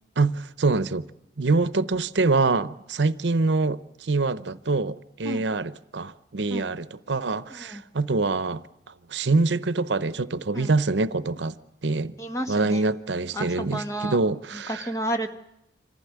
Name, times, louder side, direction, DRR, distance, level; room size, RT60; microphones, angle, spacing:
voice 1, 0.2-1.1 1.4-8.6 9.1-11.5 11.8-12.1 12.5-14.9, right 3 dB, 80° right, 0.8 m, -25 dB
voice 2, 7.5-7.8 10.5-10.7 12.2-12.8 13.3-14.2 14.5-15.3, right 1 dB, 15° left, 1.6 m, -31 dB
26.0 x 15.5 x 9.5 m
head